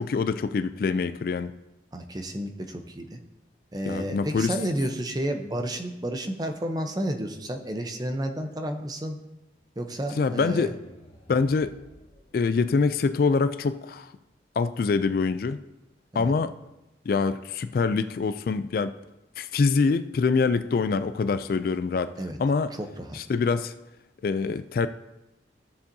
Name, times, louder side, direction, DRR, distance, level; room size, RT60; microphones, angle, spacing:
voice 1, 0.0-1.5 3.9-4.5 10.2-10.7 11.3-11.7 12.3-14.1 14.6-15.6 16.1-16.5 17.1-18.9 19.4-22.1 22.4-22.7 23.1-23.7 24.2-24.9, left 4 dB, 50° left, 12 dB, 0.3 m, -25 dB
voice 2, 1.9-3.2 3.7-9.2 9.8-10.7 16.1-16.3 22.2-22.4 22.7-23.2, right 1 dB, 20° right, 5 dB, 0.6 m, -31 dB
sound 1, 10.2-13.2, equal, 30° left, 1.4 m, -53 dB
14.0 x 7.0 x 2.7 m, 0.96 s
head